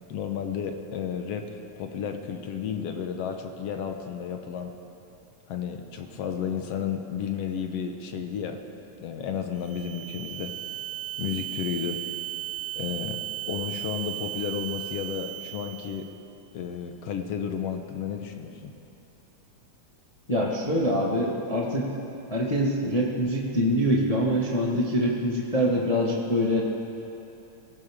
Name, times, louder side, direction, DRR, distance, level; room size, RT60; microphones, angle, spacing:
voice 1, 0.1-4.7 5.5-8.6 9.0-10.5 11.2-12.0 12.8-13.2 13.5-16.1 16.5-18.7, left 7 dB, 65° left, 5 dB, 1.8 m, -32 dB
sound 1, 9.6-16.2, right 15 dB, 70° right, 2.5 m, -36 dB
voice 2, 20.3-21.9 22.3-26.6, equal, 35° left, -3 dB, 0.5 m, -24 dB
24.0 x 16.0 x 3.6 m, 2.9 s
omnidirectional pair, 3.4 m